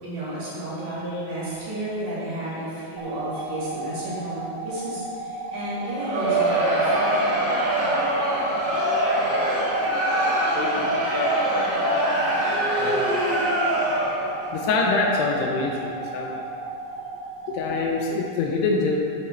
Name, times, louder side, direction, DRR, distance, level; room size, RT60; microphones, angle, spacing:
voice 1, 0.0-7.4, right 1 dB, 55° right, -9 dB, 3.4 m, -32 dB
sound 1, 3.0-18.0, right 2 dB, 70° right, 2.6 m, -34 dB
Crowd, 5.8-14.3, right 1 dB, 85° right, 0.9 m, -23 dB
voice 2, 10.3-11.4 12.8-13.1 14.2-16.4 17.5-19.0, left 3 dB, 80° left, 0 dB, 2.6 m, -26 dB
9.6 x 8.0 x 3.2 m, 2.5 s
omnidirectional pair, 5.1 m